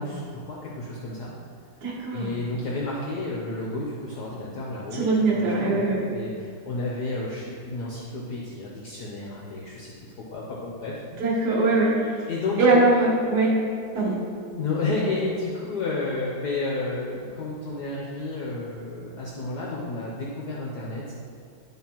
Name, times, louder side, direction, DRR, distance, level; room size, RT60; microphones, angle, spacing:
voice 1, 0.0-1.3 2.1-5.0 5.3-9.9 10.3-10.9 12.3-12.8 13.9-14.1 14.5-21.1, left 2 dB, 65° left, -4 dB, 1.2 m, -31 dB
voice 2, 1.8-2.3 4.9-6.0 11.2-12.2 12.6-13.5 13.9-14.1, right 2 dB, 55° right, -6 dB, 1.5 m, -21 dB
10.5 x 3.6 x 2.9 m, 2.4 s
omnidirectional pair, 2.3 m